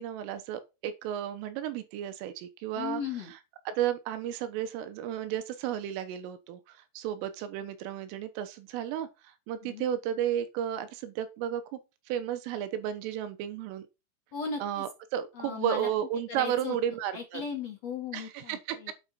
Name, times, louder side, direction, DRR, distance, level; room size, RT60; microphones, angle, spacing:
voice 1, 0.0-3.0 3.7-11.8 12.1-13.8 14.6-17.4 18.1-18.9, right 10 dB, 85° right, 3.5 m, -33 dB
voice 2, 2.7-3.3 9.6-9.9 14.3-14.8 15.3-15.9 16.3-16.8 17.1-18.9, left 5 dB, 65° left, 1.6 m, -37 dB
8.5 x 6.4 x 5.5 m
omnidirectional pair, 5.9 m